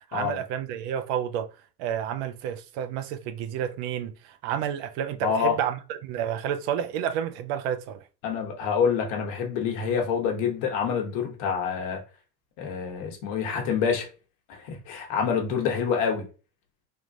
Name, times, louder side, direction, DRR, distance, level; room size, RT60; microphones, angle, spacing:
voice 1, 0.0-1.5 1.8-8.0, right 9 dB, 50° right, 0.5 m, -30 dB
voice 2, 5.2-5.6 8.2-12.0 12.6-14.1 14.5-16.2, left 6 dB, 55° left, 1.2 m, -27 dB
3.5 x 2.3 x 2.6 m
hypercardioid pair, 80°, 50 cm